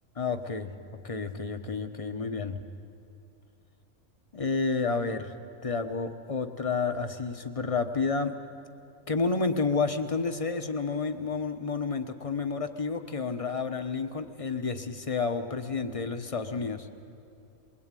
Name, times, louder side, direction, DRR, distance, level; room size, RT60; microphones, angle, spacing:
voice 1, 0.2-0.7 1.0-2.6 4.3-5.3 5.6-8.3 9.1-16.9, left 4 dB, 25° left, 8 dB, 1.0 m, -30 dB
22.0 x 21.5 x 9.1 m, 2.6 s
omnidirectional pair, 1.5 m